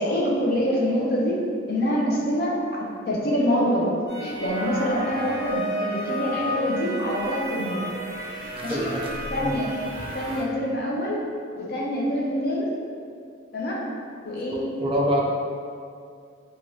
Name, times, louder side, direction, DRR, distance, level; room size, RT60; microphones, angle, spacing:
voice 1, 0.0-1.4 1.7-3.9 4.2-7.8 8.4-8.9 9.3-9.8 10.1-11.2 11.6-12.7 13.5-13.8 14.2-14.7, equal, 50° left, -3 dB, 0.5 m, -25 dB
sound 1, 4.1-10.4, equal, 50° right, 1.0 m, -32 dB
voice 2, 8.6-9.1 9.4-9.6 14.5-15.3, equal, 30° right, -2 dB, 0.4 m, -26 dB
3.0 x 2.4 x 2.7 m, 2.3 s
head